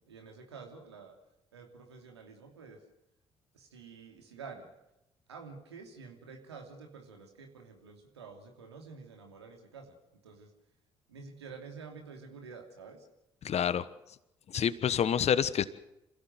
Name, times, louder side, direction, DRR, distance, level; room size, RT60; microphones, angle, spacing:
voice 1, 0.1-1.2 1.5-2.8 3.5-4.7 5.3-10.0 10.2-10.5 11.1-13.0, right 5 dB, 85° right, 3 dB, 2.9 m, -49 dB
voice 2, 13.4-13.8 14.5-15.6, left 8 dB, 50° left, 16 dB, 1.2 m, -27 dB
27.0 x 16.0 x 7.9 m, 0.89 s
figure-of-eight pair, 45°, 14 cm